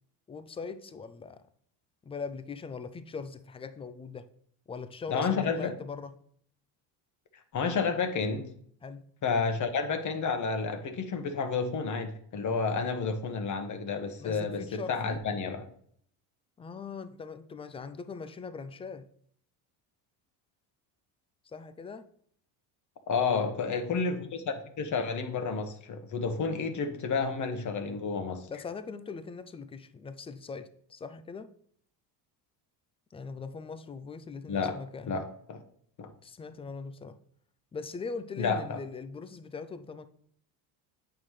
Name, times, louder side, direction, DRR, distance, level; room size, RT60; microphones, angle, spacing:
voice 1, 0.3-1.4 2.0-4.3 4.7-6.1 8.8-9.0 14.2-15.2 16.6-19.1 21.5-22.1 28.5-31.5 33.1-35.1 36.2-37.2 37.7-40.1, left 5 dB, 15° left, 11 dB, 0.3 m, -41 dB
voice 2, 5.1-5.7 7.5-8.4 9.2-15.7 23.1-28.4 34.5-34.8 35.1-35.6 36.0-36.1 38.4-38.8, left 5 dB, 40° left, 7 dB, 1.3 m, -30 dB
8.6 x 5.7 x 3.2 m, 0.63 s
cardioid pair, 110°, 46 cm